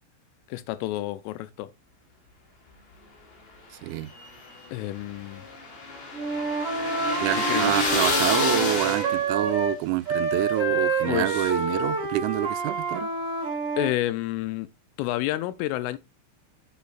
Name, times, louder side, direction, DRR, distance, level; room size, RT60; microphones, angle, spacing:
voice 1, 0.5-1.7 4.7-5.5 7.5-7.8 11.1-11.5 13.8-14.7 15.0-16.0, left 15 dB, 85° left, 3.1 m, -29 dB
voice 2, 3.8-4.1 7.2-13.1, right 17 dB, 90° right, 3.2 m, -27 dB
sound 1, 3.9-9.4, left 3 dB, 55° left, 4.4 m, -28 dB
Wind instrument woodwind instrument, 6.1-9.8 10.1-13.9, right 4 dB, 35° right, 3.5 m, -28 dB
8.4 x 8.0 x 2.5 m
omnidirectional pair, 5.8 m